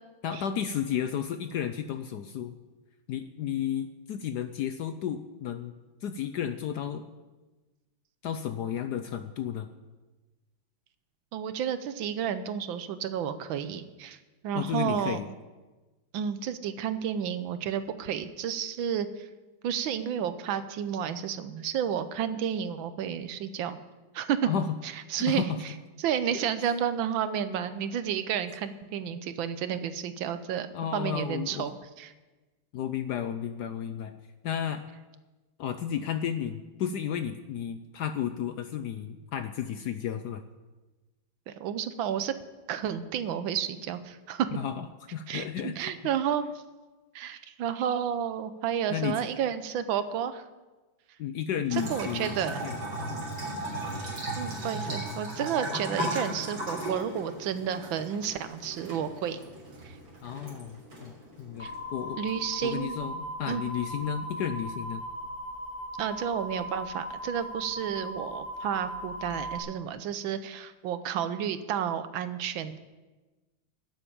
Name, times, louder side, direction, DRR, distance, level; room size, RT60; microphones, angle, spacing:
voice 1, 0.2-2.6 3.1-5.7 6.0-7.1 8.2-9.7 14.5-15.3 24.4-24.7 25.1-25.6 26.3-26.4 30.7-31.7 32.7-34.2 34.4-34.9 35.6-40.4 44.5-44.9 45.1-45.9 48.9-49.2 51.2-52.8 53.1-53.3 60.2-62.2 62.6-65.0, left 9 dB, 70° left, 9 dB, 1.0 m, -33 dB
voice 2, 11.3-14.2 14.4-15.2 16.1-19.3 19.6-23.8 24.1-24.5 24.8-25.4 26.0-30.7 30.9-31.7 32.0-32.1 41.5-42.3 42.7-44.5 45.3-46.5 47.1-50.4 51.7-52.6 54.4-59.4 59.8-60.0 61.6-61.7 62.1-63.0 63.5-63.6 66.0-72.8, right 8 dB, 75° right, 11 dB, 1.5 m, -31 dB
Bathtub (filling or washing) / Trickle dribble, 51.7-62.7, right 1 dB, 55° right, 4.2 m, -37 dB
sound 1, 61.6-69.6, equal, 15° left, 1.3 m, -38 dB
12.0 x 7.9 x 8.7 m, 1.2 s
omnidirectional pair, 2.2 m